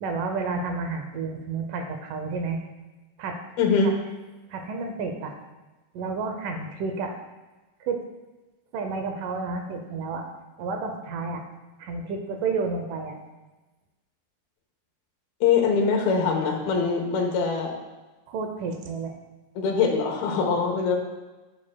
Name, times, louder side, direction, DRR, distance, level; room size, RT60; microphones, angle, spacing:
voice 1, 0.0-2.6 3.2-3.4 3.8-3.9 4.5-5.3 5.9-7.1 7.8-8.0 8.7-10.3 10.6-11.4 11.8-13.1 18.3-19.1, right 4 dB, 75° right, 4 dB, 2.1 m, -30 dB
voice 2, 3.6-3.9 15.4-17.7 19.6-21.0, left 5 dB, 85° left, 1 dB, 3.0 m, -23 dB
11.5 x 7.4 x 2.3 m, 1.1 s
omnidirectional pair, 4.2 m